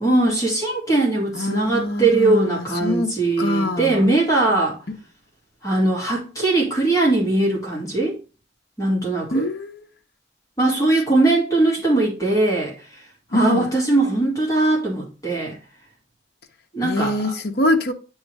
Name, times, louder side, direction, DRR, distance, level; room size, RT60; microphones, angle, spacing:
voice 1, 0.0-4.8 5.6-8.2 8.8-9.4 10.6-13.0 13.3-15.6 16.7-17.2, right 2 dB, 20° left, 2.3 m, -20 dB
voice 2, 1.3-4.0 9.3-9.9 13.3-13.7 16.8-17.9, left 1 dB, 60° left, 0.9 m, -24 dB
9.4 x 3.2 x 4.7 m
head